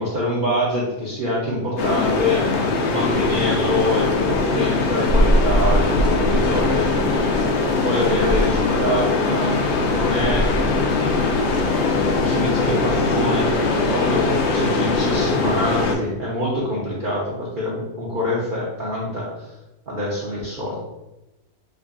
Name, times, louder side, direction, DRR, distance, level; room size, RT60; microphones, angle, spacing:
voice 1, 0.0-2.5 2.8-6.9 7.8-10.9 12.2-13.5 13.9-19.3 19.9-20.8, left 1 dB, 45° right, -6 dB, 0.7 m, -25 dB
sound 1, 1.8-16.0, left 3 dB, 65° left, 0.7 m, -20 dB
4.7 x 2.4 x 2.4 m, 0.99 s
omnidirectional pair, 1.6 m